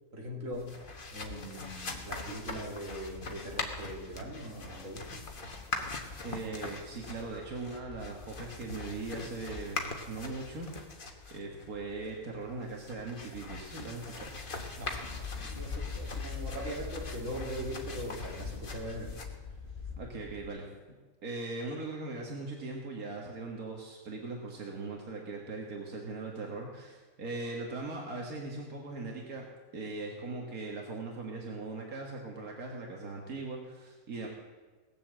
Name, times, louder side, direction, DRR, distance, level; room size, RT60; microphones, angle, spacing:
voice 1, 0.1-0.8 1.1-5.2 14.8-19.1, equal, 65° right, -2 dB, 2.8 m, -41 dB
sound 1, 0.5-20.5, left 3 dB, 40° left, 1.4 m, -41 dB
voice 2, 6.2-10.7 11.3-14.3 20.0-20.7 21.2-29.4 29.7-34.3, right 3 dB, 90° right, 0 dB, 2.1 m, -40 dB
18.5 x 7.1 x 7.5 m, 1.3 s
omnidirectional pair, 1.5 m